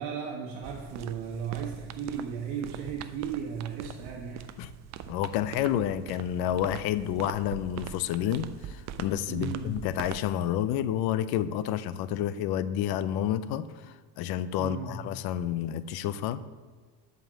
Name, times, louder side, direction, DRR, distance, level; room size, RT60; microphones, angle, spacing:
voice 1, 0.0-4.4 9.3-9.7 14.6-14.9, right 7 dB, 70° right, -1 dB, 1.3 m, -35 dB
sound 1, 0.6-10.3, right 10 dB, 40° right, 0.5 m, -43 dB
voice 2, 5.1-16.4, left 11 dB, 60° left, 15 dB, 0.6 m, -30 dB
7.8 x 5.3 x 7.5 m, 1.5 s
cardioid pair, 150°, 43 cm